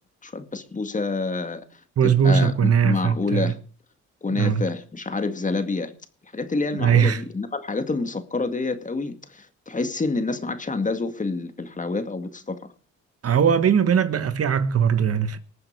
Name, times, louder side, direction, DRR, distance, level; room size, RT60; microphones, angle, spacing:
voice 1, 0.2-1.6 2.0-3.6 4.2-5.9 6.3-12.6, left 3 dB, 25° left, 2.1 m, -28 dB
voice 2, 2.0-3.5 4.3-4.6 6.7-7.2 13.2-15.4, right 7 dB, 50° right, 1.3 m, -20 dB
19.5 x 8.1 x 6.7 m
cardioid pair, 90°, 30 cm